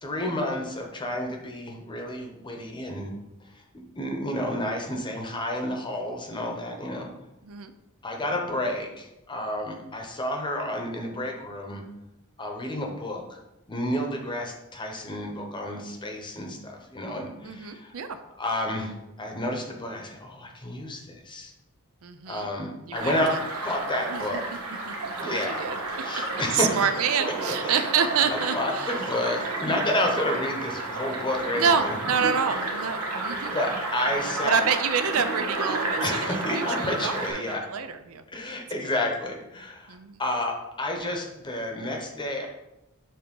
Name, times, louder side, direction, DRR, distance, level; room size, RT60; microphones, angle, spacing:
voice 1, 0.0-3.1 3.5-3.6 3.9-7.1 8.0-11.8 12.4-13.2 13.7-17.9 18.4-21.5 22.3-24.4 25.2-25.7 26.0-26.8 27.6-27.9 28.5-32.0 33.5-34.6 36.0-37.7 38.3-42.5, left 1 dB, 20° left, 2 dB, 0.9 m, -30 dB
voice 2, 17.4-18.2 22.0-22.5 22.9-23.4 23.7-23.8 24.1-24.4 24.9-25.8 26.5-28.9 31.6-33.5 34.4-38.2 39.9-40.2, right 6 dB, 70° right, 9 dB, 0.5 m, -28 dB
sound 1, 22.9-37.3, right 2 dB, 85° right, 1.3 m, -31 dB
7.4 x 2.9 x 5.3 m, 0.95 s
head